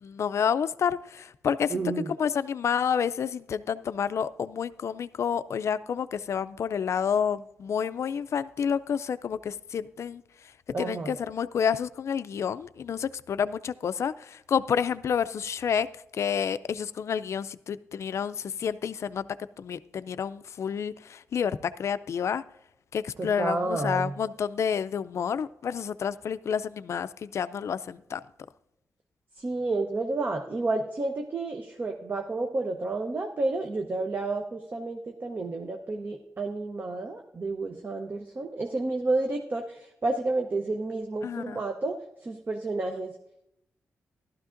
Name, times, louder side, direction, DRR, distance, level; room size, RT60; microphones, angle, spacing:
voice 1, 0.0-1.9 2.2-10.2 10.8-15.9 16.1-19.3 19.6-22.4 22.9-28.2 41.2-41.6, left 7 dB, 60° left, 15 dB, 0.4 m, -29 dB
voice 2, 1.7-2.1 10.7-11.1 23.2-24.1 29.4-43.1, right 2 dB, 35° right, 4 dB, 0.8 m, -30 dB
15.0 x 12.0 x 2.5 m, 0.81 s
wide cardioid pair, 115°, 5 cm